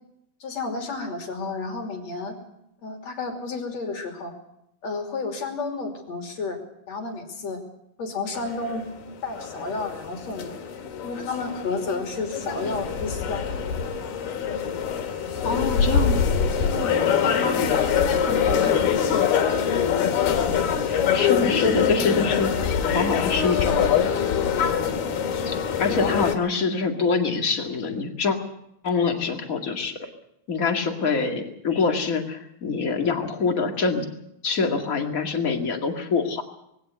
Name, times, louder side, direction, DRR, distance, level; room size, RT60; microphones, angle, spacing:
voice 1, 0.4-2.4 2.8-4.3 4.8-6.6 6.9-7.6 8.0-8.9 9.2-10.6 11.0-13.5 16.7-17.9 18.3-18.8, left 3 dB, 50° left, 4 dB, 3.9 m, -31 dB
sound 1, 8.3-26.4, left 7 dB, 90° left, 3.8 m, -24 dB
voice 2, 15.4-16.2 20.5-20.6 20.9-22.5 22.8-24.0 25.5-28.4 28.8-30.0 30.5-34.0 34.4-36.4, left 4 dB, 30° left, 4 dB, 1.8 m, -25 dB
21.0 x 17.0 x 7.9 m, 0.79 s
omnidirectional pair, 4.2 m